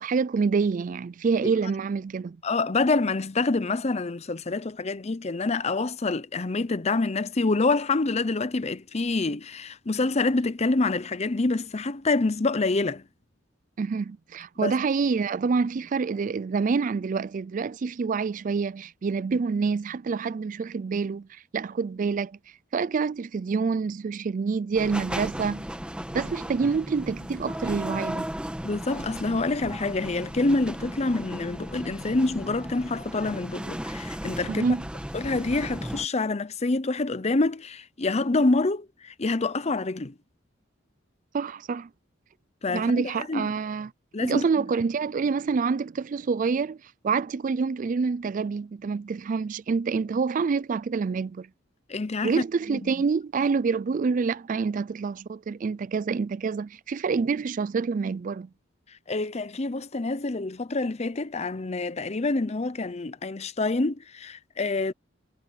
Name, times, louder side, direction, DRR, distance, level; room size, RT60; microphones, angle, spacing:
voice 1, 0.0-2.4 13.8-22.4 22.7-25.6 26.1-28.3 34.5-34.8 41.3-41.9 42.7-43.9 44.2-46.8 47.0-51.5 52.2-58.5, right 5 dB, 45° right, 0.4 m, -27 dB
voice 2, 2.4-13.0 14.6-14.8 28.6-34.6 35.1-40.1 42.6-43.5 44.1-44.6 51.9-52.3 52.7-52.8 59.1-64.9, left 3 dB, 35° left, 0.7 m, -27 dB
sound 1, 24.8-36.1, equal, 5° right, 1.3 m, -35 dB
head